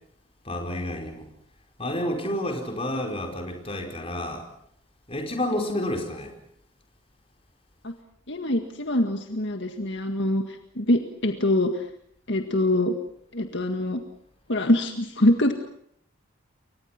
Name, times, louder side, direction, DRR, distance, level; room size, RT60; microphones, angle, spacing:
voice 1, 0.4-1.3 1.8-4.5 5.1-6.3, left 1 dB, 30° left, 3 dB, 5.0 m, -30 dB
voice 2, 8.3-11.8 12.3-12.9 13.3-14.0 14.5-15.5, left 1 dB, 60° left, 6 dB, 1.9 m, -24 dB
29.5 x 24.0 x 6.0 m, 0.70 s
head